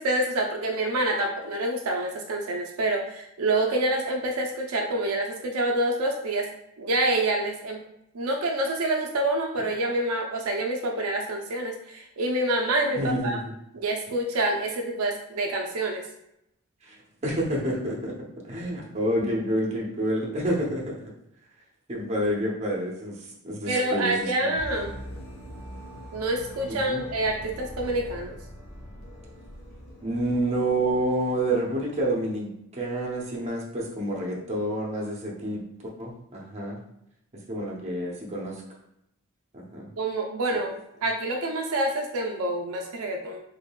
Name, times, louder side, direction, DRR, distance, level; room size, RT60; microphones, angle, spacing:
voice 1, 0.0-6.5 6.8-7.8 8.1-13.4 13.7-16.0 23.6-24.9 26.1-28.3 40.0-40.7 41.0-43.4, right 1 dB, 75° right, 2 dB, 0.5 m, -27 dB
voice 2, 12.9-13.4 16.9-17.0 17.2-18.1 18.4-21.1 21.9-23.1 23.4-24.5 26.7-27.0 30.0-35.6 36.0-36.8 37.5-38.6 39.5-39.9, right 1 dB, 30° right, -2 dB, 0.7 m, -28 dB
sound 1, 24.5-32.3, equal, 70° left, 1.0 m, -43 dB
3.6 x 3.3 x 2.3 m, 0.78 s
head